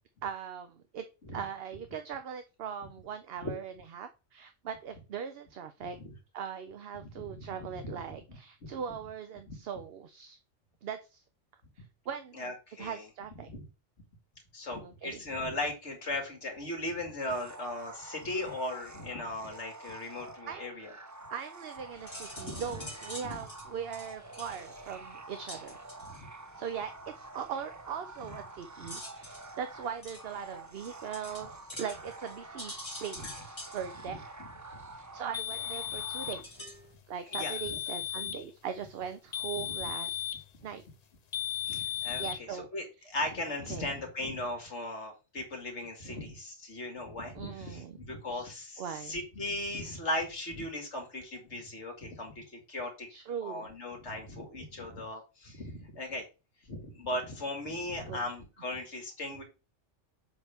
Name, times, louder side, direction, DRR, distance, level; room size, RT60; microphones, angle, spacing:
voice 1, 0.2-1.1 1.3-6.0 6.3-10.4 10.8-11.2 11.8-12.5 12.8-13.5 14.8-15.2 20.5-20.8 21.3-25.8 26.1-26.2 26.6-32.7 33.0-34.1 35.0-36.6 37.1-40.2 40.6-40.8 42.2-42.7 43.7-43.9 46.1-46.3 47.3-48.0 48.3-48.4 48.8-49.2 53.1-53.7 58.1-58.2, right 7 dB, 60° right, 9 dB, 0.8 m, -40 dB
voice 2, 7.0-8.0 8.6-8.7 9.5-9.6 12.3-13.0 13.5-13.6 14.5-20.9 22.4-22.6 23.2-23.4 26.0-26.2 28.8-28.9 34.7-34.9 35.9-36.0 37.3-37.8 39.6-39.7 41.6-53.1 53.4-56.2 56.6-59.4, left 1 dB, 65° left, 2 dB, 2.3 m, -38 dB
sound 1, 17.3-36.4, right 3 dB, 25° right, 0.4 m, -48 dB
sound 2, 21.8-36.9, left 1 dB, 20° left, 2.0 m, -49 dB
sound 3, 35.3-36.5 37.3-38.5 39.3-40.5 41.3-42.4, left 11 dB, 45° left, 0.5 m, -35 dB
7.3 x 5.6 x 3.5 m, 0.30 s
omnidirectional pair, 1.3 m